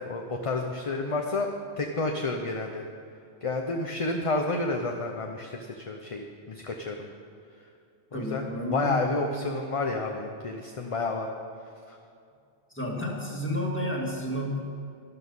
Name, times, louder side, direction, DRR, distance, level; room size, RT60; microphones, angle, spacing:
voice 1, 0.0-1.5 1.8-2.8 3.4-7.1 8.1-8.4 8.7-11.3 11.9-12.0, left 3 dB, 35° left, 2 dB, 0.8 m, -30 dB
voice 2, 8.1-9.2 12.7-14.6, equal, 10° left, -2 dB, 2.1 m, -31 dB
12.5 x 12.0 x 5.5 m, 2.5 s
omnidirectional pair, 1.2 m